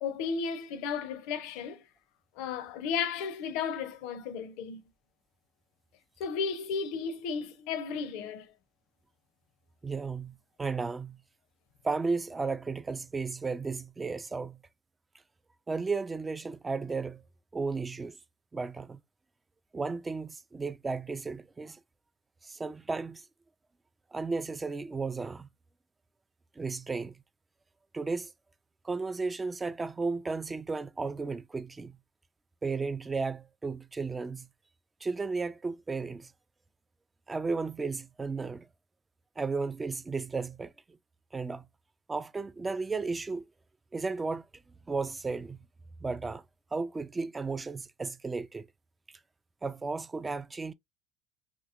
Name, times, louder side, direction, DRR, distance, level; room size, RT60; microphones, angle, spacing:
voice 1, 0.0-1.8 2.4-4.8 6.2-8.5, left 6 dB, 70° left, 0.5 m, -34 dB
voice 2, 9.8-11.2 11.8-14.6 15.7-17.2 17.5-18.2 18.5-19.0 19.7-21.8 22.4-23.3 24.1-25.5 26.6-27.2 27.9-28.3 28.8-32.0 32.6-34.5 35.0-36.3 37.3-38.7 39.4-40.7 41.3-41.6 42.1-43.5 43.9-44.4 44.9-45.6 46.0-46.4 46.7-48.7 49.6-50.7, right 4 dB, 20° right, 0.3 m, -34 dB
3.0 x 2.8 x 2.4 m
hypercardioid pair, 70°, 0 cm